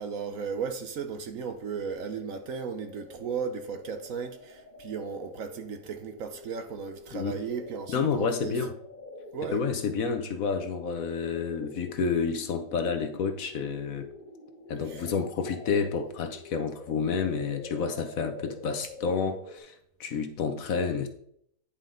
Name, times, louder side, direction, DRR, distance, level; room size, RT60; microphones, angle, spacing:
voice 1, 0.0-8.6 9.3-9.6 14.8-15.1, right 6 dB, 60° right, 1.1 m, -35 dB
sound 1, 2.0-19.6, left 2 dB, 25° left, 1.5 m, -47 dB
voice 2, 7.9-8.7 9.4-14.1 14.7-21.1, left 5 dB, 60° left, 1.2 m, -29 dB
10.0 x 5.4 x 3.8 m
omnidirectional pair, 1.7 m